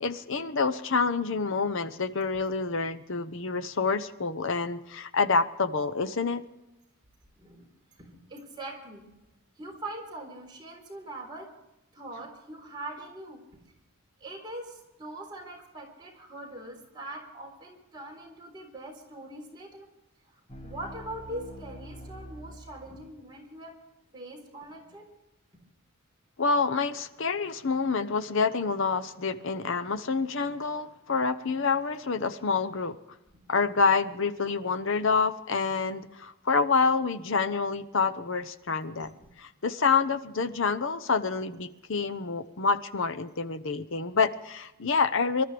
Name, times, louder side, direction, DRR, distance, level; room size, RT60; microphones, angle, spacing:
voice 1, 0.0-6.4 26.4-33.0 33.5-39.1 39.6-45.4, left 4 dB, 60° left, 11 dB, 0.9 m, -27 dB
voice 2, 8.0-9.1 9.6-11.5 11.9-13.4 14.2-19.9 20.3-23.7 24.1-25.1 33.3-33.5 39.0-39.1, right 1 dB, 20° right, -1 dB, 4.0 m, -42 dB
pan filmscary, 20.5-23.3, equal, 30° left, 1.9 m, -45 dB
26.0 x 13.0 x 3.4 m, 0.94 s
head